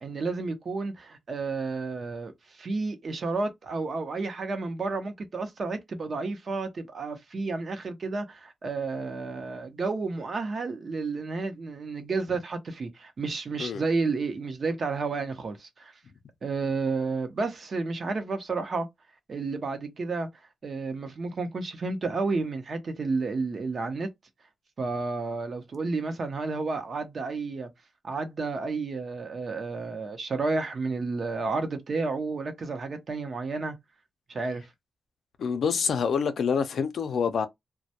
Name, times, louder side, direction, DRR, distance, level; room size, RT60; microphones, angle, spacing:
voice 1, 0.0-15.9 16.4-18.9 19.3-20.3 20.6-24.1 24.8-27.7 28.0-33.8 34.3-34.7, right 3 dB, 50° right, 0.7 m, -31 dB
voice 2, 35.4-37.5, left 6 dB, 75° left, 0.5 m, -26 dB
2.2 x 2.1 x 2.8 m
cardioid pair, 95°, 0 cm